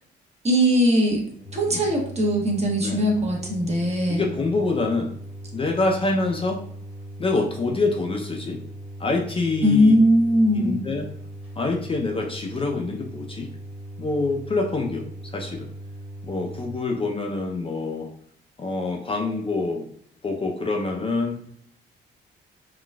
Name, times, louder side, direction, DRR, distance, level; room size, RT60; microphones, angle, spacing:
voice 1, 0.4-1.2 1.5-4.3 9.6-10.8, equal, 35° right, -1 dB, 1.0 m, -20 dB
sound 1, 1.4-16.7, right 1 dB, 5° right, 1.2 m, -39 dB
voice 2, 4.1-5.1 5.5-6.6 7.2-8.6 9.0-9.9 10.5-11.1 11.6-13.5 14.0-15.1 15.3-15.7 16.2-18.1 18.6-19.9 20.2-21.4, left 3 dB, 30° left, 1 dB, 0.5 m, -26 dB
3.9 x 2.3 x 2.2 m, 0.65 s
cardioid pair, 90°, 20 cm